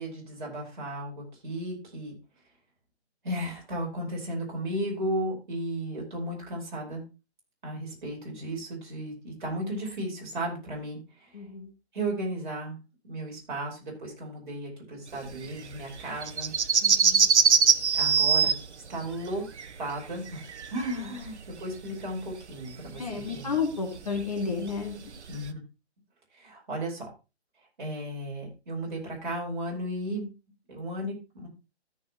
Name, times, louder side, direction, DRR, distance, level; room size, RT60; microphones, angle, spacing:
voice 1, 0.0-2.1 3.2-7.0 7.6-11.3 11.9-12.8 13.0-16.5 17.9-18.5 18.9-19.5 19.8-20.4 20.7-23.6 25.3-25.6 26.4-27.1 27.8-30.3 30.7-31.5, right 1 dB, 45° right, -2 dB, 5.0 m, -34 dB
voice 2, 11.3-11.7 16.8-17.3 23.0-25.1, left 5 dB, 35° left, 1 dB, 2.2 m, -32 dB
sound 1, 15.3-21.6 21.9-25.5, right 6 dB, 80° right, 0.9 m, -24 dB
14.0 x 6.6 x 3.1 m, 0.27 s
hypercardioid pair, 175°, 34 cm